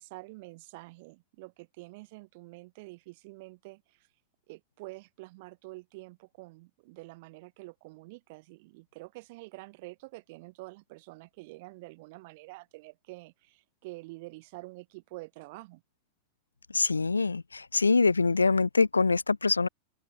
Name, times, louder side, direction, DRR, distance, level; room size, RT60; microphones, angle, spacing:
voice 1, 0.0-4.1 4.5-15.8, right 23 dB, 50° right, 3.0 m, -47 dB
voice 2, 16.7-19.7, left 4 dB, 80° left, 0.5 m, -24 dB
open air
figure-of-eight pair, 90°, 0 cm